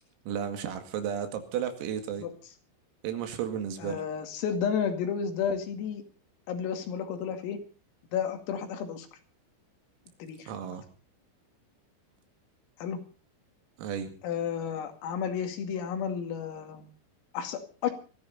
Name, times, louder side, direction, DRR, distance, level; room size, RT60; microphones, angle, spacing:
voice 1, 0.3-2.3 3.0-4.0 10.5-10.8 13.8-14.1, right 8 dB, 90° right, 7 dB, 4.9 m, -33 dB
voice 2, 3.8-6.0 6.5-7.6 8.1-9.1 10.2-10.5 12.8-13.0 14.2-16.9 17.3-17.9, left 7 dB, 90° left, 6 dB, 5.0 m, -32 dB
20.5 x 15.0 x 4.2 m, 0.36 s
omnidirectional pair, 5.9 m